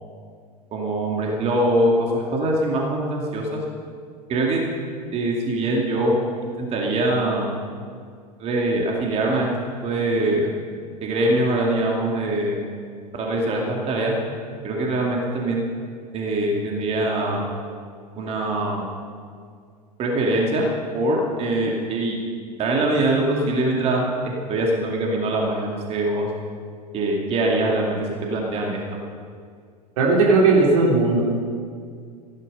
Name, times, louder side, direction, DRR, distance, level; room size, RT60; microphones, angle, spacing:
voice 1, 0.7-3.6 4.3-4.6 5.1-6.2 6.6-7.5 8.4-9.5 9.8-10.5 11.0-12.6 13.1-14.1 14.6-15.7 16.1-17.5 18.1-18.8 20.0-20.7 20.9-22.2 22.6-26.3 26.9-28.8, right 1 dB, 30° right, -1 dB, 2.4 m, -23 dB
voice 2, 30.0-31.2, right 3 dB, 55° right, -3 dB, 3.2 m, -16 dB
15.5 x 12.0 x 5.5 m, 2.1 s
figure-of-eight pair, 85°, 21 cm